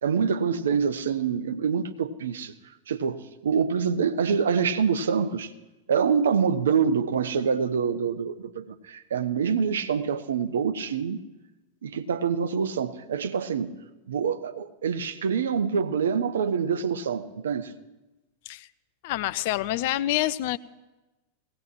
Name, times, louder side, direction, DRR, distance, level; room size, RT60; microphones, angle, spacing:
voice 1, 0.0-2.5 2.9-5.5 5.9-11.2 11.8-13.7 14.1-17.7, right 6 dB, 65° right, 0.6 m, -26 dB
voice 2, 19.0-20.6, left 15 dB, 50° left, 0.4 m, -27 dB
19.0 x 16.5 x 3.0 m
figure-of-eight pair, 90°, 0 cm